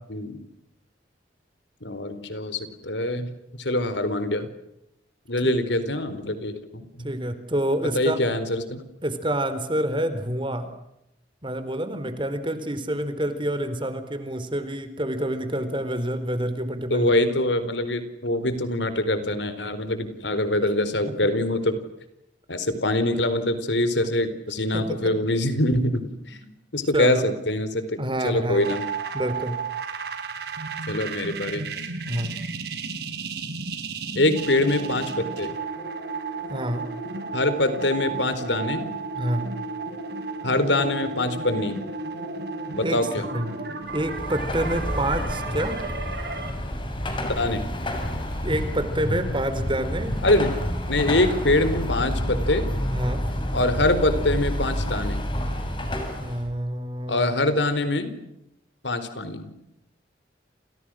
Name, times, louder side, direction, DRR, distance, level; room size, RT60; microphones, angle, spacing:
voice 1, 1.8-3.3 3.6-4.5 5.3-7.1 7.8-8.8 16.9-21.8 22.5-26.4 26.7-28.8 30.9-31.7 34.1-35.5 37.3-38.9 40.4-41.8 42.7-43.3 47.4-47.7 50.2-50.6 50.9-52.6 53.5-55.2 57.1-58.1 58.8-59.5, left 1 dB, 75° left, 11 dB, 4.3 m, -24 dB
voice 2, 7.0-8.2 9.0-10.7 11.4-17.1 24.7-25.0 26.9-27.2 28.0-28.7 29.1-29.6 32.1-32.3 36.5-36.8 39.2-39.4 42.8-43.0 43.3-43.5 43.9-45.8 48.4-50.3 52.9-53.2 56.2-57.3, right 1 dB, 25° right, 10 dB, 4.1 m, -27 dB
sound 1, 28.6-46.5, right 4 dB, 60° right, 5.3 m, -33 dB
Car passing by / Traffic noise roadway noise / Engine, 43.8-56.5, equal, 25° left, 6.7 m, -29 dB
30.0 x 30.0 x 6.4 m, 0.82 s
head